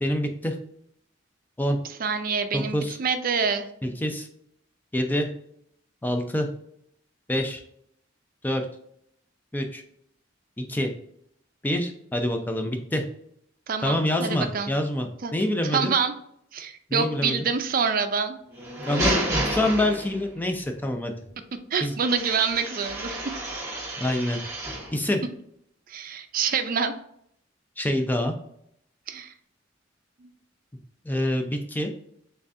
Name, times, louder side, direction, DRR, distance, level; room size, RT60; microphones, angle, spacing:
voice 1, 0.0-0.5 1.6-1.8 2.5-3.0 3.8-4.3 4.9-5.3 6.0-6.5 7.3-7.6 8.4-8.7 9.5-9.8 10.6-10.9 11.6-13.0 13.8-15.9 16.9-17.4 18.9-21.1 21.8-21.9 24.0-24.4 24.9-25.2 27.8-28.3 31.0-31.9, left 1 dB, 10° left, 5 dB, 0.5 m, -26 dB
voice 2, 2.0-3.7 13.7-14.7 15.2-15.3 15.7-16.1 16.5-18.4 21.7-23.2 25.9-26.9 29.1-29.3 30.2-30.3, right 5 dB, 50° right, 8 dB, 0.5 m, -26 dB
sound 1, 18.5-20.4 22.0-25.0, right 1 dB, 15° right, 1.1 m, -30 dB
3.7 x 3.3 x 2.6 m, 0.71 s
head